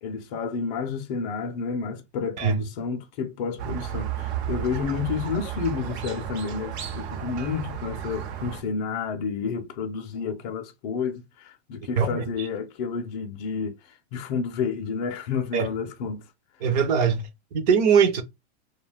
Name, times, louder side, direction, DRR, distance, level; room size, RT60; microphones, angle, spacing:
voice 1, 0.0-16.2, left 5 dB, 40° left, 0.4 m, -30 dB
Squeak, 3.6-8.6, right 9 dB, 70° right, 0.8 m, -33 dB
voice 2, 16.6-18.2, right 6 dB, 40° right, 0.4 m, -21 dB
2.3 x 2.2 x 3.3 m
supercardioid pair, 160°, 34 cm